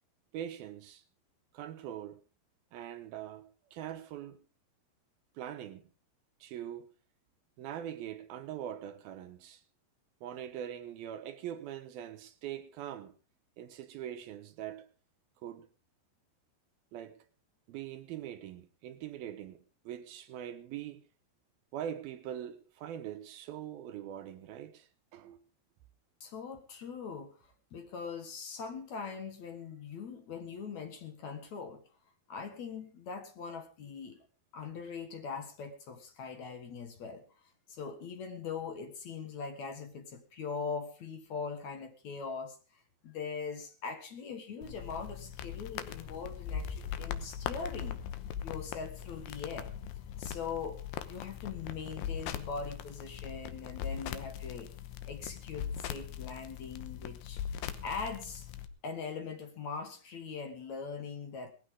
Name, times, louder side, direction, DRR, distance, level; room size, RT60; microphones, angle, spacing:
voice 1, 0.3-1.0 1.5-2.2 2.7-4.4 5.4-5.8 6.4-6.9 7.6-9.6 10.2-13.2 13.6-14.9 15.4-15.7 16.9-17.2 17.7-21.0 21.7-25.4, right 10 dB, 75° right, 2.6 m, -42 dB
voice 2, 26.2-31.8 32.3-34.2 34.5-37.2 37.7-48.0 48.4-49.7 50.2-54.7 55.1-57.4 57.8-58.5 58.8-61.5, left 5 dB, 55° left, 2.4 m, -41 dB
sound 1, 44.6-58.7, left 9 dB, 85° left, 3.1 m, -40 dB
19.0 x 15.0 x 3.7 m
omnidirectional pair, 4.6 m